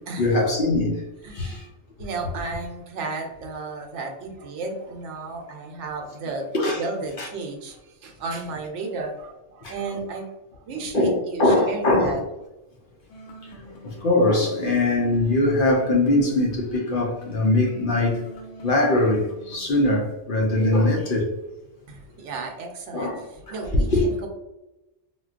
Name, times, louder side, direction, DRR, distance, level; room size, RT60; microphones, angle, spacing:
voice 1, 0.2-1.0 1.3-1.6 6.5-6.8 7.2-7.3 9.6-9.7 10.9-12.2 13.7-18.2 18.6-21.3 22.9-24.0, left 2 dB, 55° left, 0.6 m, -22 dB
voice 2, 1.2-1.7 2.0-6.5 6.8-10.3 10.7-12.2 21.9-24.3, right 3 dB, 80° right, 1.0 m, -33 dB
sound 1, 13.1-19.7, right 2 dB, 85° left, 1.0 m, -44 dB
3.8 x 2.2 x 2.4 m
omnidirectional pair, 1.2 m